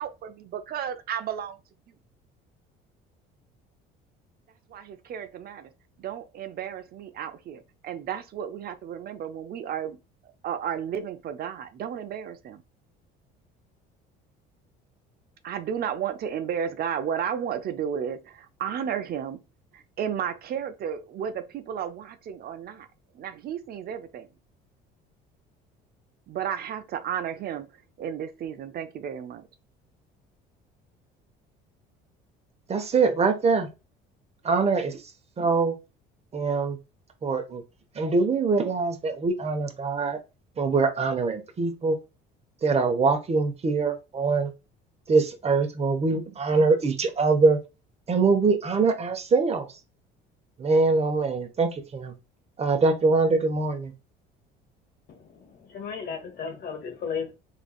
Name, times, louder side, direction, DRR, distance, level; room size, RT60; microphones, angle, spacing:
voice 1, 0.0-1.6 4.7-5.7 6.0-10.0 10.4-12.6 15.4-19.4 19.7-22.9 23.1-24.3 26.3-27.7 28.0-29.5, right 8 dB, 50° right, 0.6 m, -33 dB
voice 2, 32.7-33.7 34.4-35.0 35.4-35.8 36.3-36.8 37.2-37.6 37.9-40.2 40.6-42.0 42.6-44.5 45.1-47.6 48.1-49.7 50.6-52.1 52.6-53.9, right 4 dB, 30° right, 1.0 m, -23 dB
voice 3, 55.1-57.3, left 6 dB, 55° left, 1.2 m, -35 dB
3.8 x 3.4 x 2.3 m
supercardioid pair, 100°, 20 cm